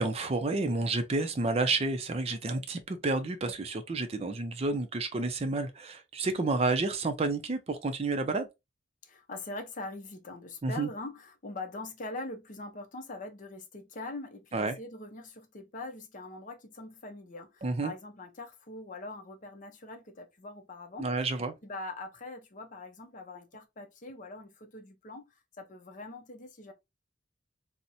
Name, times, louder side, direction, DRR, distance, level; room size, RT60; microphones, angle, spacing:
voice 1, 0.0-8.5 10.6-10.9 14.5-14.8 17.6-17.9 21.0-21.5, right 3 dB, 30° right, 0.4 m, -30 dB
voice 2, 9.0-21.1 21.6-26.7, left 2 dB, 40° left, 0.6 m, -43 dB
4.0 x 2.1 x 2.5 m
head